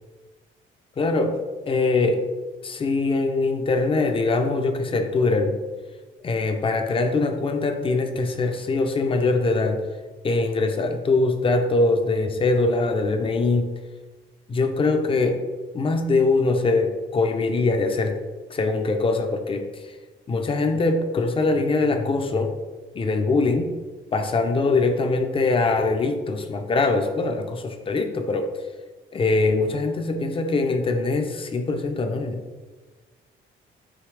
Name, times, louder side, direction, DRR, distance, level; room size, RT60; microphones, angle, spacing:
voice 1, 1.0-1.4 1.7-2.3 2.6-5.6 6.2-9.8 10.2-13.7 14.5-15.4 15.7-18.2 18.5-19.7 20.3-22.5 22.9-23.7 24.1-28.5 29.1-32.4, left 3 dB, 25° left, 5 dB, 0.5 m, -22 dB
4.9 x 2.8 x 3.2 m, 1.3 s
cardioid pair, 90°, 20 cm